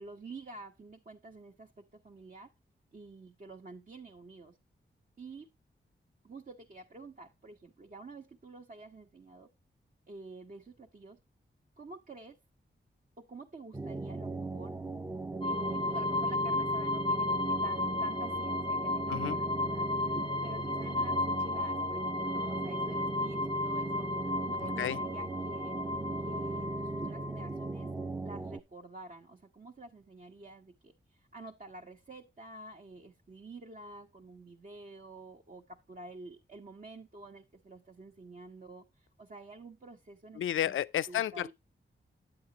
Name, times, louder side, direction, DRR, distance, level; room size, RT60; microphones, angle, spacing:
voice 1, 0.0-2.5 2.9-4.6 5.2-5.5 6.2-9.5 10.1-11.2 11.8-12.4 13.2-14.8 15.4-19.9 20.4-25.8 26.2-27.9 28.2-40.8 41.1-41.5, right 2 dB, 45° right, 1.2 m, -49 dB
sound 1, 13.7-28.6, right 2 dB, 15° right, 0.6 m, -38 dB
sound 2, 15.4-27.9, left 2 dB, 25° left, 0.6 m, -34 dB
voice 2, 24.6-25.0 40.4-41.5, left 11 dB, 85° left, 0.4 m, -32 dB
9.7 x 7.9 x 2.9 m
cardioid pair, 55°, 20 cm